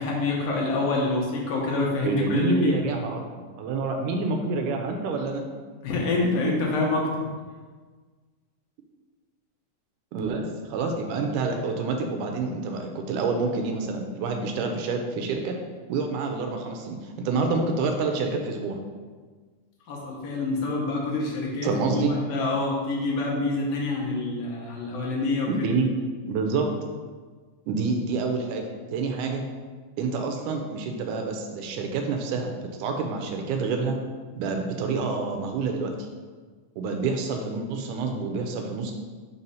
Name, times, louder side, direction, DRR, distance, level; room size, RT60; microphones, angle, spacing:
voice 1, 0.0-2.8 5.8-7.2 19.9-25.7, left 2 dB, 65° left, -2 dB, 1.6 m, -26 dB
voice 2, 2.0-5.4 10.1-15.6 15.9-18.8 21.6-22.1 25.6-25.9 26.3-26.7 27.7-29.4 30.0-34.0 34.4-36.1 36.8-38.9, right 4 dB, 80° right, 3 dB, 2.0 m, -28 dB
4.6 x 4.2 x 5.4 m, 1.4 s
omnidirectional pair, 3.7 m